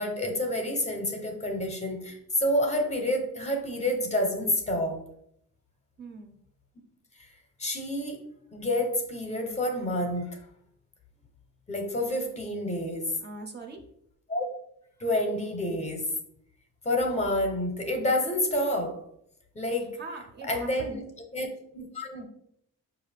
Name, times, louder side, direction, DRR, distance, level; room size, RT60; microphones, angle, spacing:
voice 1, 0.0-5.0 7.2-7.3 7.6-10.4 11.7-13.2 14.3-14.5 15.0-16.1 16.8-19.0 19.5-20.0 20.4-21.0 21.3-22.2, left 1 dB, 20° left, 4 dB, 0.6 m, -29 dB
voice 2, 6.0-6.4 13.2-13.8 20.0-21.0, right 3 dB, 35° right, 4 dB, 0.5 m, -41 dB
5.4 x 2.4 x 3.2 m, 0.71 s
cardioid pair, 155°, 31 cm